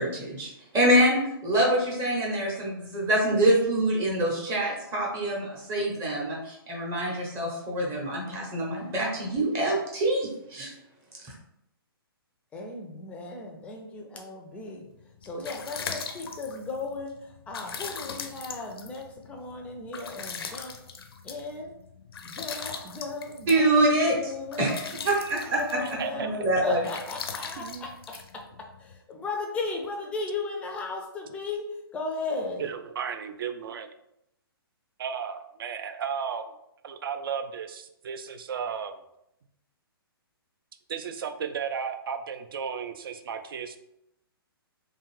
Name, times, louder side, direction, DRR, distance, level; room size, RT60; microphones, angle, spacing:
voice 1, 0.0-10.7 23.5-24.3 24.6-25.8 26.1-26.8, right 1 dB, 25° right, -3 dB, 0.7 m, -25 dB
voice 2, 12.5-14.9 15.2-20.7 21.2-21.7 22.2-23.9 24.1-24.7 25.5-26.4 26.6-32.7, left 3 dB, 10° left, 1 dB, 0.4 m, -36 dB
sound 1, 15.0-29.0, left 5 dB, 75° left, 0.5 m, -40 dB
voice 3, 27.6-27.9 32.6-33.9 35.0-36.5 36.8-38.9 40.9-43.8, right 7 dB, 65° right, 8 dB, 0.4 m, -34 dB
2.6 x 2.3 x 3.1 m, 0.81 s
hypercardioid pair, 135°, 13 cm